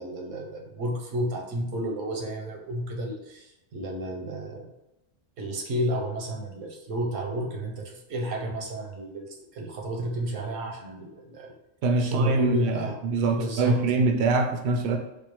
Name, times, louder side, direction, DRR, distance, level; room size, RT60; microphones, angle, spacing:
voice 1, 0.0-4.7 5.4-9.3 9.5-11.5 12.0-13.0 13.3-13.8, equal, 85° right, 2 dB, 1.1 m, -31 dB
voice 2, 11.8-15.0, right 3 dB, 60° right, 4 dB, 0.6 m, -24 dB
4.3 x 2.3 x 3.0 m, 0.92 s
omnidirectional pair, 1.3 m